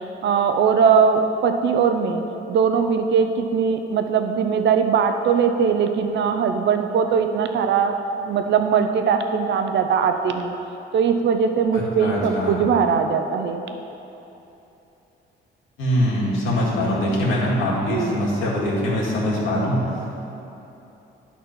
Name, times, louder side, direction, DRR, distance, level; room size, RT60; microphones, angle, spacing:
voice 1, 0.2-10.5 10.9-13.6 17.7-18.2, right 6 dB, 65° right, 7 dB, 0.6 m, -20 dB
voice 2, 11.7-12.5 15.8-19.8, left 1 dB, 90° left, -5 dB, 2.0 m, -23 dB
11.0 x 4.1 x 5.9 m, 3.0 s
cardioid pair, 90°, 20 cm